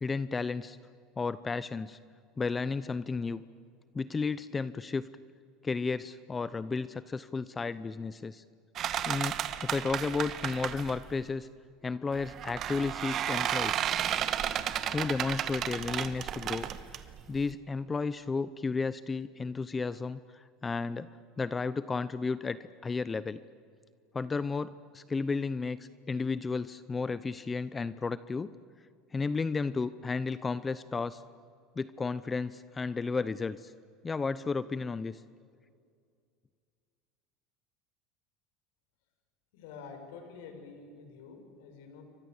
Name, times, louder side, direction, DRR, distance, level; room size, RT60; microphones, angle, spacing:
voice 1, 0.0-0.8 1.2-2.0 2.4-3.4 3.9-5.1 5.6-8.4 9.0-9.3 9.6-11.5 11.8-13.9 14.9-16.7 16.9-23.4 24.1-28.5 29.1-31.2 31.8-33.7 34.0-35.2, left 4 dB, 20° left, 16 dB, 0.7 m, -33 dB
sound 1, 8.8-11.1 12.1-17.5, right 10 dB, 40° right, 1.6 m, -33 dB
voice 2, 39.5-42.0, left 5 dB, 80° left, 5 dB, 6.4 m, -48 dB
29.0 x 24.5 x 8.1 m, 2.2 s
supercardioid pair, 130°, 0 cm